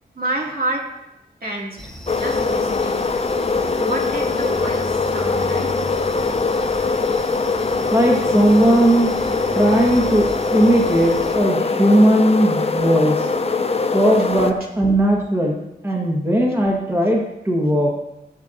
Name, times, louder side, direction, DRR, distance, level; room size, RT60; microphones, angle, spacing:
voice 1, 0.2-0.9 1.4-1.9 2.2-3.0 3.5-5.9, right 1 dB, 60° right, -2 dB, 2.3 m, -29 dB
sound 1, 1.8-11.3, left 1 dB, 5° left, 0.9 m, -36 dB
sound 2, 2.1-14.5, left 4 dB, 35° left, 0.6 m, -22 dB
voice 2, 7.9-9.2 9.5-13.3 13.9-17.9, right 1 dB, 15° right, -1 dB, 1.5 m, -17 dB
16.0 x 7.5 x 2.7 m, 0.90 s
wide cardioid pair, 95°, 18 cm